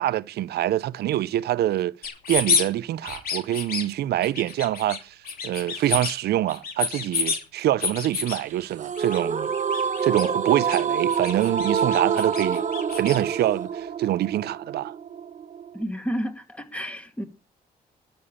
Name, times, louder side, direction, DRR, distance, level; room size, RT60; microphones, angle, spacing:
voice 1, 0.0-1.9 2.3-5.2 5.4-9.5 10.0-12.6 12.9-14.9, right 13 dB, 85° right, 0.6 m, -25 dB
sound 1, 2.0-2.7 3.0-3.8 4.2-5.0 5.2-6.1 6.5-7.4 7.8-8.4 8.9-9.2 9.5-10.8 11.1-13.2, left 6 dB, 65° left, 2.9 m, -29 dB
sound 2, 8.8-15.8, right 7 dB, 45° right, 1.5 m, -27 dB
voice 2, 15.7-17.3, equal, 10° left, 2.2 m, -31 dB
12.5 x 7.0 x 8.6 m
cardioid pair, 85°, 16 cm